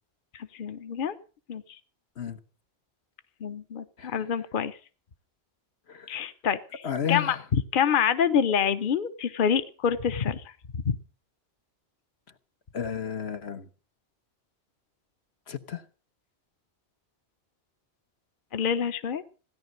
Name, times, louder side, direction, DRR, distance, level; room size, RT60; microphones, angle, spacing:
voice 1, 0.3-1.2 1.5-1.6 3.4-4.8 6.1-6.8 7.1-7.4 7.7-10.4 10.7-11.0 18.5-19.2, left 7 dB, 55° left, 11 dB, 1.0 m, -26 dB
voice 2, 4.0-4.3 5.9-6.1 6.8-7.4 12.7-13.7 15.5-15.8, left 8 dB, 80° left, 9 dB, 1.4 m, -32 dB
17.0 x 10.5 x 6.5 m, 0.39 s
omnidirectional pair, 1.1 m